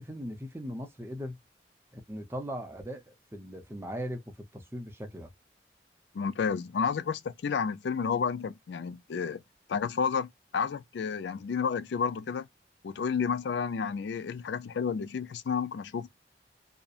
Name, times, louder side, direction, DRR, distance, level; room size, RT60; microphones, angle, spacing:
voice 1, 0.0-1.4 1.9-5.3, equal, 15° right, 0.6 m, -39 dB
voice 2, 6.1-9.4 9.7-12.5 12.8-16.1, left 6 dB, 80° left, 0.4 m, -31 dB
2.7 x 2.1 x 2.3 m
head